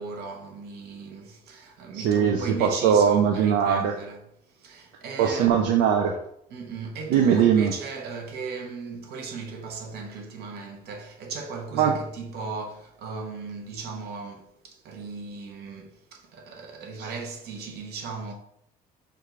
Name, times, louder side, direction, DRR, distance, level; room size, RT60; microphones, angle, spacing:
voice 1, 0.0-4.3 4.5-5.6 6.5-18.3, right 4 dB, 70° right, 0.8 m, -37 dB
voice 2, 1.9-4.0 5.2-6.2 7.1-7.7 11.7-12.0 17.0-17.1, right 8 dB, 90° right, 0.4 m, -21 dB
4.7 x 3.3 x 2.4 m
cardioid pair, 110°, 17 cm